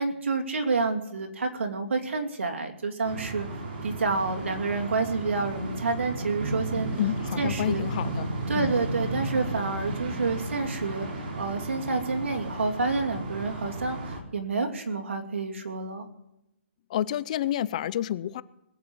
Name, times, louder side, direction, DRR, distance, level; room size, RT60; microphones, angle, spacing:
voice 1, 0.0-3.5 3.8-6.9 7.4-7.8 8.5-11.1 11.4-16.1, right 4 dB, 85° right, 2.7 m, -29 dB
sound 1, 3.0-14.2, right 1 dB, 55° right, 3.3 m, -34 dB
voice 2, 7.0-8.3 8.6-8.7 16.9-18.4, left 11 dB, 35° left, 0.5 m, -29 dB
20.5 x 8.7 x 6.2 m
hypercardioid pair, 160°, 7 cm